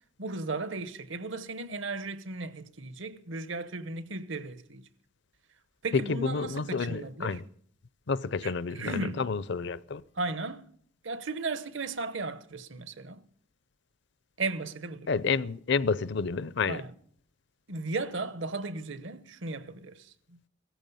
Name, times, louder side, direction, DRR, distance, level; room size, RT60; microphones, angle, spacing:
voice 1, 0.2-4.9 5.8-7.4 8.4-9.3 10.1-10.7 11.0-13.2 14.4-15.1 16.7-16.9 17.7-20.5, right 3 dB, 65° right, 1.0 m, -36 dB
voice 2, 6.2-7.4 8.1-10.0 15.1-16.8, left 5 dB, 60° left, 0.6 m, -30 dB
17.0 x 14.5 x 5.6 m
head